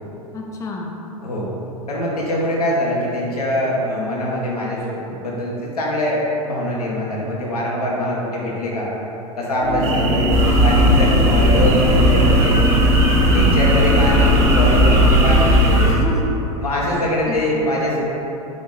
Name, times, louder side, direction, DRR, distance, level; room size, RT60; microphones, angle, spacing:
voice 1, 0.3-0.9 13.3-13.6 15.8-16.3 16.9-17.7, left 3 dB, 15° left, -1 dB, 0.5 m, -29 dB
voice 2, 1.9-8.9 9.4-12.6 13.3-15.9 16.6-18.1, equal, 80° left, -4 dB, 1.0 m, -23 dB
sound 1, 9.6-15.8, left 1 dB, 85° right, 1.1 m, -21 dB
sound 2, 9.8-15.8, right 4 dB, 50° right, 0.5 m, -26 dB
sound 3, 10.3-15.9, equal, 15° right, 0.8 m, -16 dB
4.9 x 2.6 x 4.0 m, 3.0 s
figure-of-eight pair, 90°, 19 cm